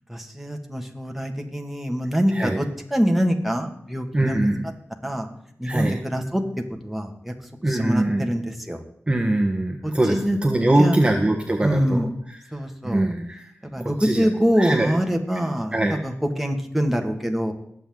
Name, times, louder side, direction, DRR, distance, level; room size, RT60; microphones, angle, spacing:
voice 1, 0.1-2.7 2.9-4.5 5.0-5.3 5.6-6.4 6.8-7.3 7.7-8.8 9.8-10.4 10.8-11.0 11.6-12.1 12.5-13.1 13.6-17.5, equal, 5° right, 2 dB, 2.0 m, -24 dB
voice 2, 4.1-4.7 5.6-6.0 7.6-8.3 9.1-10.1 10.4-12.0 12.8-13.4 13.8-14.3 14.6-14.9 15.7-16.0, right 1 dB, 20° right, 2 dB, 1.4 m, -22 dB
21.0 x 7.9 x 3.9 m, 0.70 s
cardioid pair, 55°, 5 cm